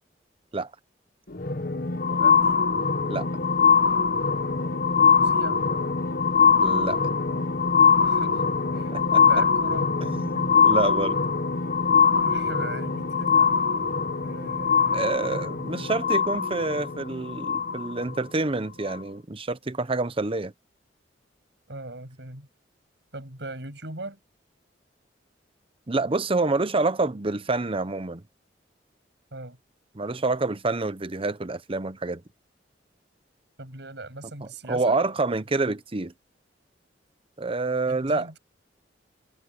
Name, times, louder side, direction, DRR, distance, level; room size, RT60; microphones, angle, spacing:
sound 1, 1.3-18.2 18.9-19.0, left 5 dB, 55° left, 1.2 m, -22 dB
voice 1, 2.0-2.6 5.1-5.7 8.0-8.4 8.7-8.9 9.2-9.9 12.1-13.6 14.2-16.0 21.7-22.5 23.1-24.2 29.3-29.6 33.6-35.0 37.9-38.4, right 2 dB, 70° right, 7.0 m, -39 dB
voice 2, 6.6-7.0 8.9-9.2 10.1-11.2 14.9-20.5 25.9-28.2 30.0-32.2 34.7-36.1 37.4-38.3, right 3 dB, 30° right, 0.8 m, -27 dB
head